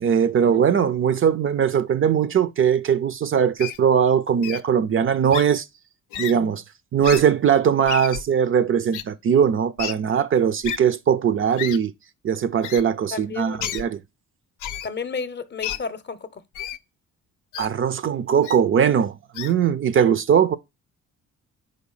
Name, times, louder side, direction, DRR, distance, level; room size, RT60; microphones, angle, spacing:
voice 1, 0.0-5.7 6.2-6.6 6.9-11.9 12.2-14.0 17.6-20.6, right 8 dB, 45° right, 0.5 m, -20 dB
Wild animals, 3.6-3.8 4.4-4.6 5.3-5.4 6.1-6.3 7.0-7.2 7.9-8.2 8.9-9.0 9.8-9.9 10.6-10.8 11.6-11.8 12.6-12.8 13.6-13.8 14.6-14.9 15.6-15.8 16.5-16.8 17.5-17.7 18.4-18.6 19.3-19.5, left 11 dB, 85° left, 0.6 m, -31 dB
voice 2, 13.1-13.8 14.8-16.4, left 5 dB, 35° left, 0.7 m, -32 dB
5.2 x 4.0 x 5.5 m
cardioid pair, 90°, 30 cm